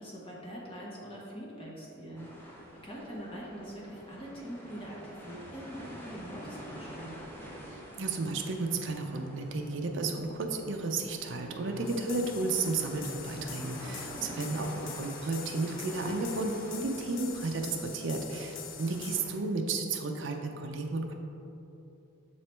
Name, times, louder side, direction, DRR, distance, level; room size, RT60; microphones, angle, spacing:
voice 1, 0.0-7.2 14.1-14.7, equal, 25° left, -5 dB, 1.0 m, -44 dB
sound 1, 2.2-19.4, equal, 10° left, 0.6 m, -47 dB
voice 2, 7.7-21.1, right 3 dB, 60° right, 3 dB, 0.5 m, -33 dB
sound 2, 11.9-19.2, left 8 dB, 65° left, 0.4 m, -45 dB
6.6 x 3.2 x 4.4 m, 2.9 s
head